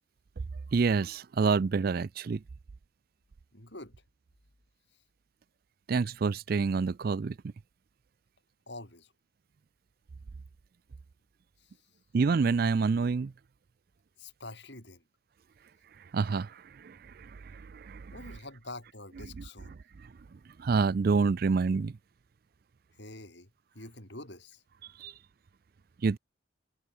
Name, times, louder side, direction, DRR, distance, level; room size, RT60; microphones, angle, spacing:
voice 1, 0.7-2.4 5.9-7.4 12.1-13.3 16.1-18.1 19.4-19.5 20.0-22.0 25.0-25.1 26.0-26.2, right 4 dB, 45° right, 0.4 m, -28 dB
voice 2, 3.5-3.9 8.7-9.1 11.6-11.7 14.2-15.0 18.1-19.7 23.0-23.5 23.7-24.6, left 2 dB, 55° left, 8.0 m, -46 dB
head